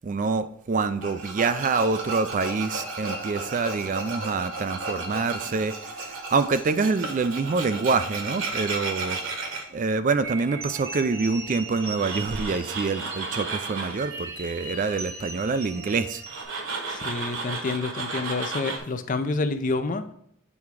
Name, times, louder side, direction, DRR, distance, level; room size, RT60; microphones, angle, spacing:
voice 1, 0.0-16.2, right 4 dB, 40° right, 12 dB, 0.3 m, -26 dB
Tools, 1.0-9.6 11.8-14.0 16.3-18.8, right 3 dB, 65° right, 1.3 m, -33 dB
sound 1, 10.2-16.4, right 2 dB, 85° right, 2.9 m, -38 dB
voice 2, 16.9-20.1, left 3 dB, 40° left, 10 dB, 0.4 m, -28 dB
8.5 x 3.6 x 4.7 m, 0.71 s
head